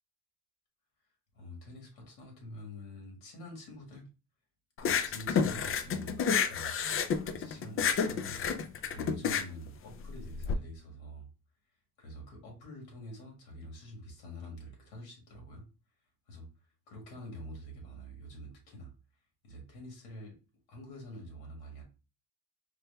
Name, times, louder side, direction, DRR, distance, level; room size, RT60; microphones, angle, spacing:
voice 1, 1.3-4.1 4.8-6.8 7.2-8.5 8.9-11.3 12.0-15.6 16.3-16.5 16.9-18.9 19.4-20.4 20.7-21.8, equal, 85° left, 1 dB, 1.9 m, -46 dB
sound 1, 4.8-10.5, left 6 dB, 35° left, 0.4 m, -30 dB
4.6 x 2.2 x 3.3 m, 0.31 s
cardioid pair, 115°, 37 cm